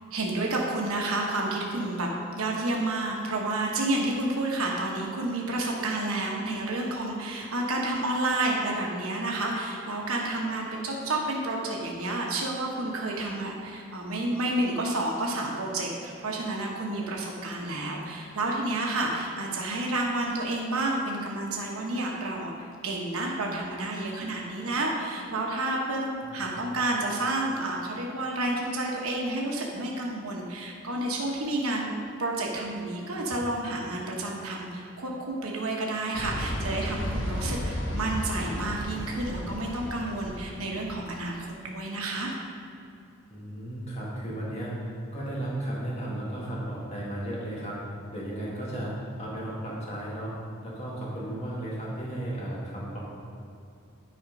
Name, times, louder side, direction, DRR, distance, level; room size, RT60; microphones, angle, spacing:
voice 1, 0.1-22.5 22.8-31.9 32.2-42.3, right 2 dB, 90° right, -1 dB, 1.1 m, -30 dB
voice 2, 26.2-26.7 43.3-44.7 45.1-47.8 48.1-50.3 50.6-53.0, right 1 dB, 30° left, -6 dB, 1.9 m, -34 dB
sound 1, 36.1-40.9, equal, 55° left, 1.4 m, -33 dB
10.0 x 4.3 x 5.2 m, 2.6 s
head